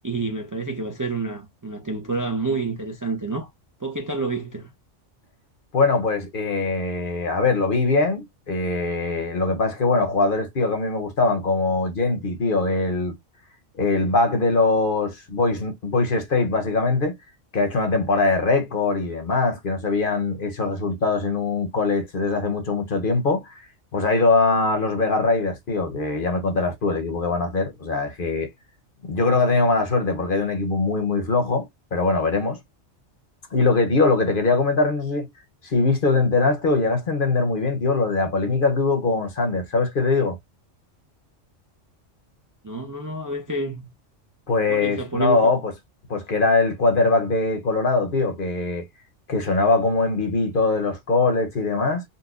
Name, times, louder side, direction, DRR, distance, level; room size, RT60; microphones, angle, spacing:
voice 1, 0.0-3.5 3.8-4.7 42.6-43.9 44.7-45.4, right 3 dB, 25° right, 0.5 m, -28 dB
voice 2, 5.7-13.2 13.8-17.1 17.5-23.7 23.9-28.5 29.0-32.6 33.5-35.3 35.6-40.4 44.5-45.7 46.1-48.9 49.3-52.0, left 3 dB, 50° left, 0.9 m, -22 dB
4.0 x 2.2 x 2.4 m
omnidirectional pair, 1.3 m